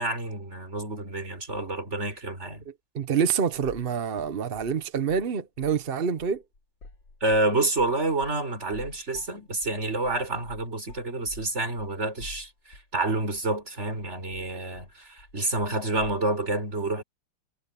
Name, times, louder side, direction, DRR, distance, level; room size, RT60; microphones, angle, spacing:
voice 1, 0.0-2.6 7.2-17.0, right 2 dB, 30° right, 4.8 m, -28 dB
voice 2, 2.7-6.4, right 7 dB, 55° right, 0.6 m, -27 dB
sound 1, 3.5-3.9 4.2-5.3 5.6-5.9 6.2-13.0 13.3-13.4 13.8-16.2, left 2 dB, 55° left, 5.2 m, -48 dB
omnidirectional pair, 2.4 m